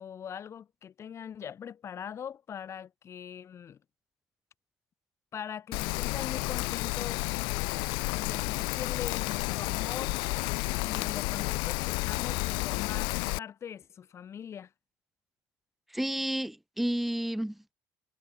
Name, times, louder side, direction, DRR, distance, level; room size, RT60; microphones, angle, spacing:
voice 1, 0.0-3.8 5.3-7.3 8.1-10.2 10.8-14.7, left 8 dB, 35° left, 2.1 m, -42 dB
Rain, 5.7-13.4, left 28 dB, 85° left, 0.4 m, -31 dB
voice 2, 15.9-17.7, right 1 dB, ahead, 0.5 m, -31 dB
cardioid pair, 130°, 8 cm